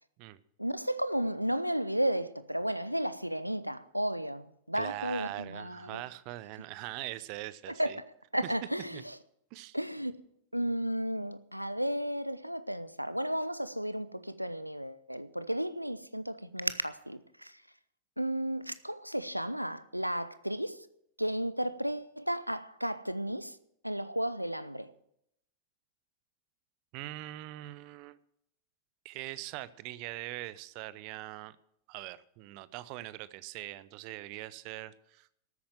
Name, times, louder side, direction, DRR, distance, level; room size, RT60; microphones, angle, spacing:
voice 1, 0.6-6.0 7.7-7.9 8.3-9.2 9.7-10.2 10.5-17.5 18.2-20.9 21.2-23.6 23.8-24.9, equal, 90° right, 0.7 m, -33 dB
voice 2, 4.7-8.0 8.4-8.5 8.9-9.0 9.5-9.8 26.9-28.2 29.0-31.6 31.9-35.3, right 17 dB, 45° right, 0.7 m, -42 dB
13.5 x 8.6 x 7.7 m
figure-of-eight pair, 90°, 0 cm